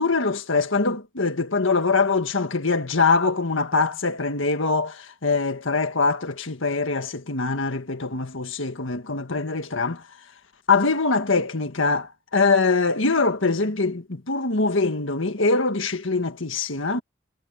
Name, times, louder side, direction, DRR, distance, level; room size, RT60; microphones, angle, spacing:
voice 1, 0.0-10.0 10.7-17.0, left 4 dB, 70° left, 1.8 m, -23 dB
head